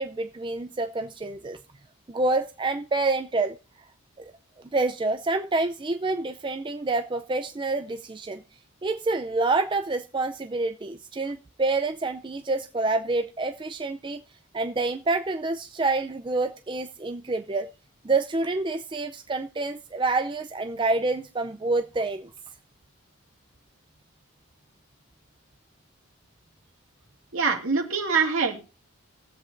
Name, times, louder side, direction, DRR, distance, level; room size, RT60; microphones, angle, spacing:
voice 1, 0.0-1.6 2.1-3.6 4.2-4.3 4.6-8.4 8.8-14.2 14.5-17.7 18.0-22.3, right 3 dB, 20° right, 7 dB, 0.4 m, -27 dB
voice 2, 27.3-28.6, right 5 dB, 65° right, 2 dB, 2.4 m, -24 dB
21.5 x 7.8 x 2.6 m, 0.34 s
head